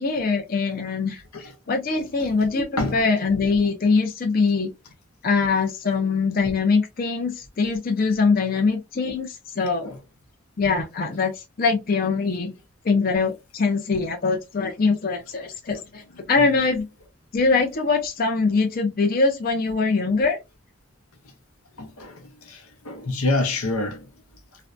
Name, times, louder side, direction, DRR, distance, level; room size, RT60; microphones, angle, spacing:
voice 1, 0.0-1.2 1.7-4.7 5.2-9.9 10.6-12.5 12.8-16.0 16.3-16.9 17.3-20.4, left 4 dB, 40° left, 0.4 m, -22 dB
voice 2, 21.8-24.0, left 2 dB, 85° left, 0.7 m, -27 dB
2.5 x 2.1 x 2.4 m
head